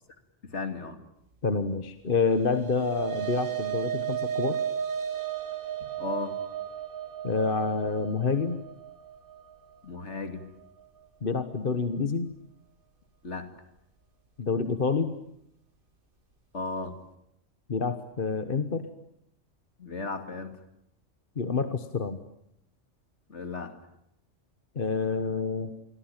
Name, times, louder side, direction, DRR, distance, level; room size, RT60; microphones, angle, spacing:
voice 1, 0.4-1.0 5.8-6.4 9.8-10.5 13.2-13.5 16.5-16.9 19.8-20.6 23.3-23.8, left 3 dB, 65° left, 8 dB, 2.9 m, -35 dB
voice 2, 1.4-4.6 7.2-8.6 11.2-12.3 14.4-15.1 17.7-18.9 21.4-22.2 24.7-25.8, left 4 dB, 45° left, 10 dB, 1.4 m, -28 dB
sound 1, 2.3-10.8, right 9 dB, 45° right, 1.8 m, -34 dB
28.5 x 23.0 x 9.1 m, 0.78 s
omnidirectional pair, 1.3 m